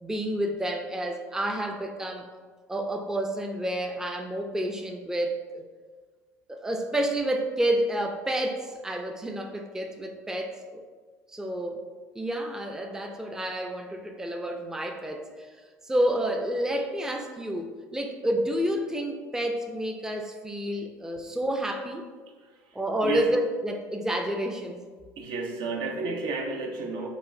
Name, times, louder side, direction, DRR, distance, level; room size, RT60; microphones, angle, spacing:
voice 1, 0.0-2.3 2.7-5.6 6.5-10.8 11.3-11.8 12.2-15.5 15.8-22.1 22.7-24.8, right 1 dB, 5° right, 3 dB, 0.4 m, -29 dB
voice 2, 22.4-23.3 25.2-27.1, right 4 dB, 65° right, 2 dB, 0.6 m, -32 dB
4.8 x 2.5 x 2.5 m, 1.5 s
hypercardioid pair, 70°, 8 cm